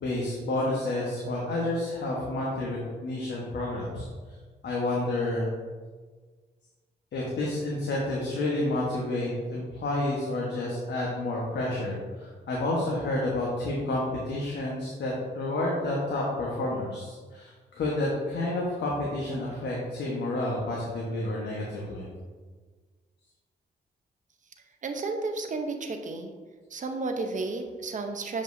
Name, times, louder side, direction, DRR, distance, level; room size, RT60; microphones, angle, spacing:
voice 1, 0.0-4.1 4.6-5.6 7.1-22.1, left 2 dB, 70° left, -4 dB, 1.2 m, -30 dB
voice 2, 24.8-26.3 26.7-28.4, right 3 dB, 45° right, 5 dB, 0.7 m, -32 dB
7.3 x 5.2 x 2.7 m, 1.5 s
cardioid pair, 100°, 19 cm